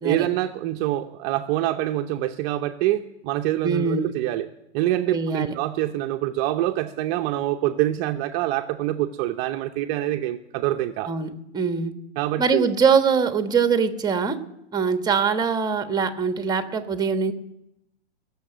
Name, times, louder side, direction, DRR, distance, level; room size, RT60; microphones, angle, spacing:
voice 1, 0.0-4.5 4.7-11.1 12.2-12.7, right 14 dB, 35° right, 6 dB, 0.8 m, -25 dB
voice 2, 3.6-4.1 5.1-5.6 11.1-11.9 12.4-14.4 14.7-17.3, right 5 dB, 10° right, 8 dB, 1.3 m, -23 dB
20.5 x 7.1 x 9.2 m, 0.87 s
hypercardioid pair, 115°, 34 cm